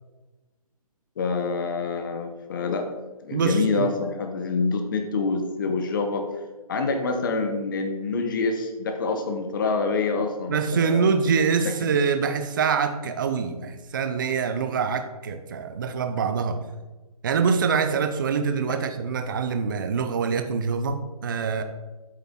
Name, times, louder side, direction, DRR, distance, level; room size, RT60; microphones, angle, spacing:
voice 1, 1.2-2.9 3.2-6.3 6.7-11.1 11.6-11.9, left 4 dB, 35° left, 6 dB, 0.9 m, -26 dB
voice 2, 3.3-3.9 10.5-16.6 17.2-21.6, right 5 dB, 30° right, 8 dB, 0.5 m, -25 dB
8.3 x 6.8 x 3.6 m, 1.2 s
hypercardioid pair, 165°, 20 cm